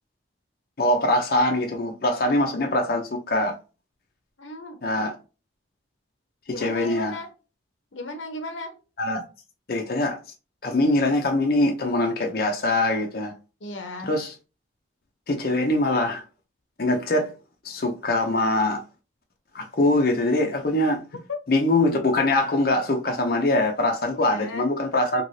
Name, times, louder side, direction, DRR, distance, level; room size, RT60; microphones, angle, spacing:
voice 1, 0.8-3.5 4.8-5.2 6.5-7.1 9.0-9.2 9.7-10.2 10.6-13.3 14.0-14.3 15.3-16.2 16.8-17.3 17.6-18.8 19.5-21.0 21.5-25.2, left 2 dB, 50° left, 0.6 m, -23 dB
voice 2, 4.4-5.1 6.5-7.3 7.9-8.8 13.6-14.1 21.3-21.4 24.1-24.7, left 2 dB, 90° left, 0.8 m, -35 dB
3.1 x 2.9 x 2.7 m
head